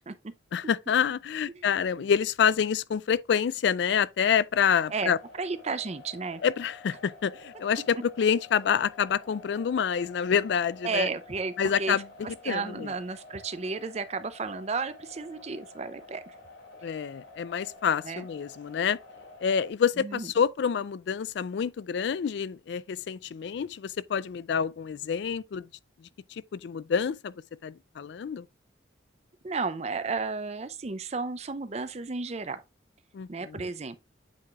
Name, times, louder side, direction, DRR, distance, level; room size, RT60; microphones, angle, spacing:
voice 1, 0.5-5.2 6.4-11.1 11.6-12.1 12.5-12.9 16.8-19.0 19.4-25.7 26.3-27.3 27.6-28.4 33.1-33.7, left 7 dB, 60° left, 0.3 m, -27 dB
sound 1, 5.0-19.7, left 2 dB, 85° left, 2.5 m, -50 dB
voice 2, 5.4-6.4 10.8-12.0 12.4-16.3 18.0-18.2 20.0-20.3 29.4-32.6 33.3-34.0, right 4 dB, 35° right, 0.5 m, -33 dB
8.4 x 4.8 x 2.4 m
head